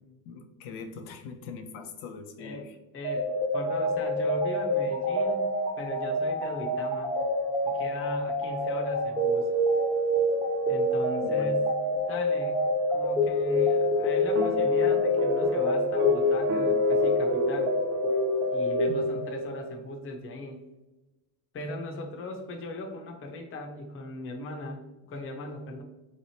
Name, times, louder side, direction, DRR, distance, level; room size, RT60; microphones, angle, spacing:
voice 1, 0.3-2.7 11.2-11.5 18.9-19.2, left 4 dB, 70° left, 5 dB, 0.6 m, -41 dB
voice 2, 2.4-2.7 2.9-3.3 3.5-7.2 7.6-9.5 10.6-12.6 12.9-17.8 18.5-20.6 21.5-25.8, left 2 dB, 25° left, 2 dB, 0.7 m, -38 dB
sound 1, 3.0-19.6, left 1 dB, 15° right, 0.8 m, -26 dB
sound 2, 14.4-18.8, right 6 dB, 65° right, 0.5 m, -36 dB
3.9 x 3.3 x 2.7 m, 1.0 s
supercardioid pair, 110°, 48 cm